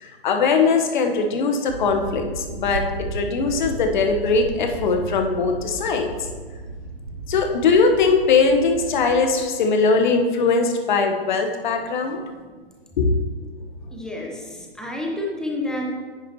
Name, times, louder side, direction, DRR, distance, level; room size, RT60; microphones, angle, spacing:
voice 1, 0.0-6.1 7.3-12.2 13.0-13.1, left 4 dB, 50° left, 4 dB, 1.2 m, -20 dB
sound 1, 1.7-9.3, right 2 dB, 60° right, 1.5 m, -34 dB
voice 2, 13.9-15.9, left 1 dB, ahead, -1 dB, 1.0 m, -30 dB
10.5 x 8.9 x 3.0 m, 1.5 s
figure-of-eight pair, 130°, 31 cm